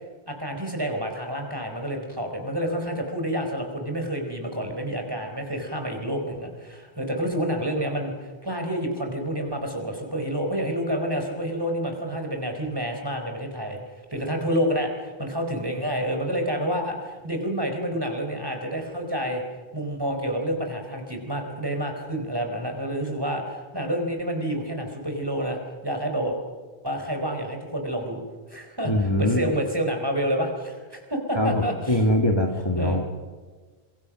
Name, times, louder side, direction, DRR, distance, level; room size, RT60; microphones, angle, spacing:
voice 1, 0.3-13.8 14.1-19.4 19.7-26.4 26.8-28.2 28.5-32.0 32.8-33.0, equal, 20° right, 3 dB, 4.5 m, -29 dB
voice 2, 28.8-29.5 31.4-33.0, left 1 dB, 25° left, 2 dB, 2.1 m, -23 dB
26.5 x 23.5 x 6.4 m, 1.4 s
omnidirectional pair, 1.1 m